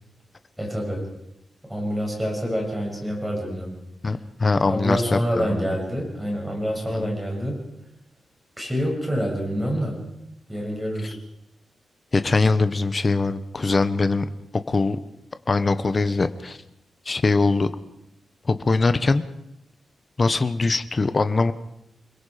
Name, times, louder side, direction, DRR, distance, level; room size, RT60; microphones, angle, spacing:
voice 1, 0.6-1.1 1.7-3.8 4.7-7.6 8.6-10.0 10.5-11.2, equal, 5° right, -1 dB, 7.3 m, -27 dB
voice 2, 4.0-5.7 6.9-7.1 12.1-14.3 14.7-15.0 15.5-16.6 17.1-17.7 18.5-19.2 20.2-21.5, left 3 dB, 30° left, 11 dB, 1.1 m, -22 dB
29.0 x 21.5 x 5.1 m, 0.82 s
wide cardioid pair, 150°, 0 cm